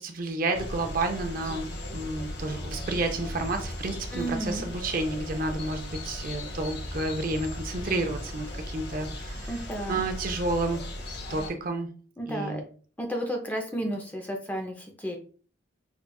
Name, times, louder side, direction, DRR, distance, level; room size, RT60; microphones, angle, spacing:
voice 1, 0.0-1.7 1.9-9.5 9.9-10.9 11.3-11.9 12.3-12.6, right 2 dB, 45° right, 6 dB, 0.5 m, -30 dB
sound 1, 0.5-11.5, left 1 dB, 55° left, 0.7 m, -38 dB
sound 2, 3.4-10.2, left 1 dB, 75° left, 1.3 m, -43 dB
voice 2, 4.1-4.7 9.5-10.0 12.2-12.6 13.0-15.2, right 1 dB, 10° left, 2 dB, 0.5 m, -32 dB
4.8 x 2.3 x 2.2 m, 0.41 s
head